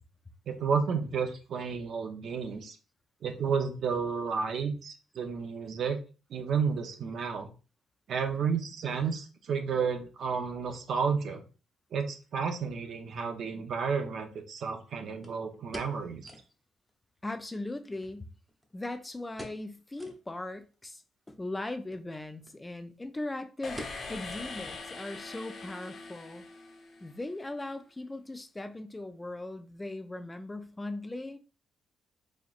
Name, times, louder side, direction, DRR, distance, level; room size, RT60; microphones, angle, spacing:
voice 1, 0.5-2.8 3.2-6.0 6.3-7.5 8.1-11.4 11.9-16.3, right 6 dB, 65° right, 0.6 m, -31 dB
sound 1, 13.1-13.2 15.2-16.6 16.9-17.0 17.3-17.4 18.0-18.9 19.3-19.7 20.0-20.2 20.7-20.8 21.8-22.1 22.4-22.6 22.9-23.2 23.8-24.8 25.1-25.2 25.8-26.1 26.4-26.5, equal, 10° right, 0.8 m, -46 dB
voice 2, 17.2-18.3 18.7-21.0 21.3-26.4 27.0-31.4, left 2 dB, 15° left, 0.4 m, -39 dB
sound 2, 23.6-27.5, left 3 dB, 50° left, 0.9 m, -43 dB
4.2 x 2.9 x 2.4 m
cardioid pair, 90°, 0 cm